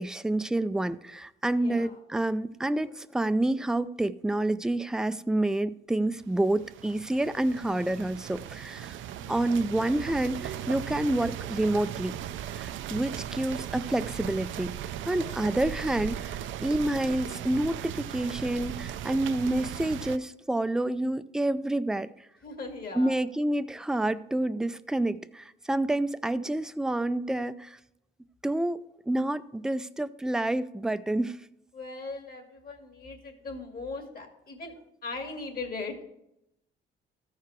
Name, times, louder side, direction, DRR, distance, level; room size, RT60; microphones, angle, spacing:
voice 1, 0.0-9.0 9.3-12.2 12.5-14.8 15.1-22.1 23.0-27.8 28.4-31.4, right 1 dB, 5° right, 13 dB, 0.3 m, -28 dB
voice 2, 1.6-2.0 9.2-9.6 15.2-15.5 22.4-23.1 31.7-34.7 35.0-36.0, left 3 dB, 50° left, 3 dB, 2.2 m, -39 dB
sound 1, 6.2-20.2, right 10 dB, 75° right, 0.5 m, -38 dB
13.5 x 4.7 x 4.7 m, 0.82 s
cardioid pair, 90°, 20 cm